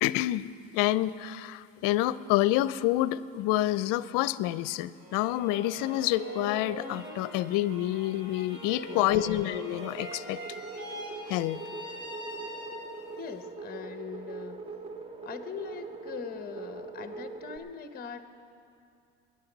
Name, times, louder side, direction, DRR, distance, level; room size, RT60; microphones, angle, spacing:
voice 1, 0.0-10.4 11.3-11.6, left 15 dB, 70° left, 17 dB, 0.6 m, -28 dB
sound 1, 4.9-13.2, equal, 35° right, 3.0 m, -43 dB
sound 2, 8.7-17.6, right 4 dB, 15° right, 0.9 m, -42 dB
voice 2, 8.9-9.4 13.2-14.6 15.2-18.2, left 7 dB, 25° left, 8 dB, 0.9 m, -41 dB
22.5 x 10.5 x 4.0 m, 2.5 s
supercardioid pair, 100°, 35 cm